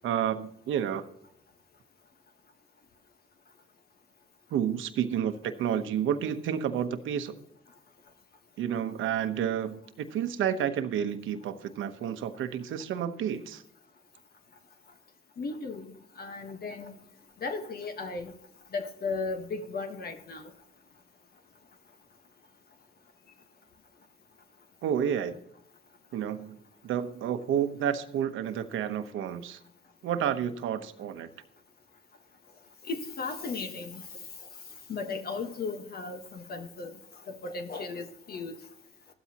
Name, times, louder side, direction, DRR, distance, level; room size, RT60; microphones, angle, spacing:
voice 1, 0.0-1.0 4.5-7.4 8.6-13.6 24.8-25.4 26.1-26.6 26.8-29.6 30.0-31.3, right 9 dB, 80° right, 9 dB, 1.1 m, -30 dB
voice 2, 15.4-15.9 16.2-16.9 17.4-18.3 18.7-20.5 32.9-34.0 34.9-37.0 37.3-38.6, left 4 dB, 50° left, 6 dB, 1.4 m, -35 dB
15.0 x 12.5 x 3.0 m, 0.78 s
cardioid pair, 90°, 20 cm